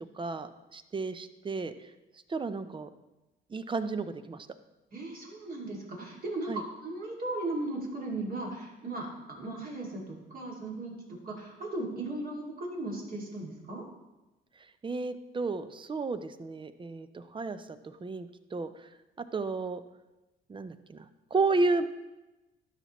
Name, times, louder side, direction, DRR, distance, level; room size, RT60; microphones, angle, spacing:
voice 1, 0.1-1.7 2.3-2.9 3.5-4.5 6.5-6.6 14.8-18.9 19.3-19.8 20.5-21.1 21.3-21.9, right 3 dB, 25° right, 12 dB, 0.5 m, -32 dB
voice 2, 4.9-13.8, right 2 dB, 45° right, -2 dB, 2.4 m, -37 dB
12.0 x 5.7 x 3.1 m, 1.0 s
cardioid pair, 90°, 20 cm